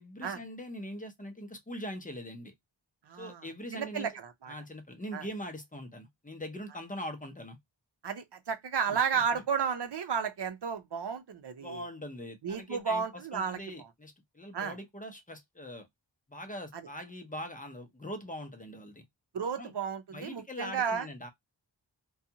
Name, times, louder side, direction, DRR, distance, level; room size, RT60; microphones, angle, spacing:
voice 1, 0.0-2.5 3.2-4.1 4.5-7.6 8.9-9.4 11.6-15.9 16.3-19.0 19.6-19.7 20.1-21.3, equal, 20° left, 0.7 m, -42 dB
voice 2, 3.1-3.4 3.7-4.5 5.1-5.3 8.0-11.8 12.4-13.9 14.5-14.7 16.7-16.8 19.3-21.1, right 6 dB, 60° right, 0.7 m, -33 dB
2.4 x 2.4 x 2.7 m
cardioid pair, 50°, 46 cm